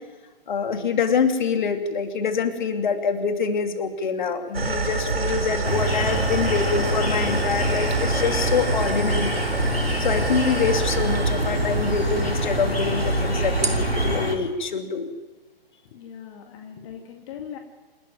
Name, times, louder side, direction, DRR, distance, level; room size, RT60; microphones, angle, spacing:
voice 1, 0.5-9.4 10.0-15.1, left 5 dB, 50° left, 6 dB, 2.8 m, -25 dB
sound 1, 4.5-14.2, right 4 dB, 80° right, 3.5 m, -26 dB
sound 2, 5.6-14.3, left 2 dB, 85° left, 4.3 m, -27 dB
voice 2, 15.9-17.6, left 8 dB, 30° left, 3 dB, 2.1 m, -39 dB
27.5 x 13.0 x 9.3 m, 1.2 s
figure-of-eight pair, 130°, 30 cm